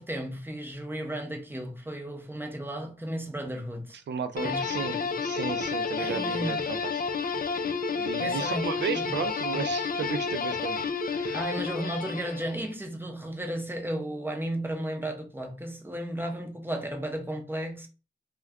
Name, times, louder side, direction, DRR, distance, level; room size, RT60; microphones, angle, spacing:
voice 1, 0.0-4.0 4.4-5.1 6.0-6.7 8.2-8.7 9.1-9.2 11.3-17.9, right 1 dB, 10° right, 0.6 m, -34 dB
voice 2, 4.1-7.0 8.0-10.8 11.0-11.5, right 6 dB, 70° right, 0.4 m, -34 dB
sound 1, 4.4-12.7, left 5 dB, 50° left, 0.4 m, -30 dB
2.2 x 2.2 x 3.5 m
wide cardioid pair, 70°, 19 cm